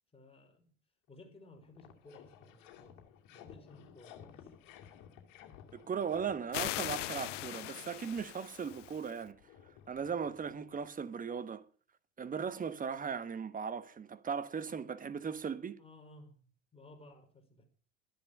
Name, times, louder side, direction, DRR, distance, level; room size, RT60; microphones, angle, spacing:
voice 1, 0.1-0.7 1.1-4.5 15.8-17.6, left 2 dB, 15° left, 5.2 m, -57 dB
sound 1, 1.1-1.2 1.4-10.9, left 9 dB, 55° left, 2.7 m, -57 dB
voice 2, 5.7-9.4 9.9-11.6 12.2-15.8, right 6 dB, 20° right, 1.2 m, -38 dB
sound 2, 6.5-9.1, left 17 dB, 70° left, 0.6 m, -40 dB
13.0 x 10.5 x 6.6 m
hypercardioid pair, 75°, 38 cm